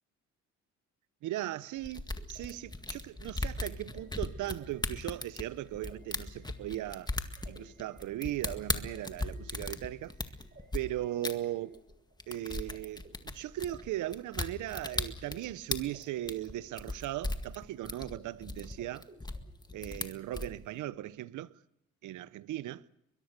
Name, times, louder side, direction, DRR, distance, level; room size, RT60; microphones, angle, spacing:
voice 1, 1.2-7.1 7.5-10.1 10.7-11.8 12.3-19.1 19.7-21.5 22.0-22.9, right 14 dB, 80° right, 0.8 m, -38 dB
sound 1, 1.7-12.8 13.0-14.6 14.9-15.0 15.2-17.3 17.5-18.2 18.5-19.9 20.3-20.4, right 3 dB, 30° right, 6.8 m, -58 dB
sound 2, 1.8-10.8 11.2-11.3 11.7-11.9 12.2-20.5, left 2 dB, 15° left, 1.9 m, -37 dB
22.5 x 22.0 x 6.7 m
cardioid pair, 90°, 30 cm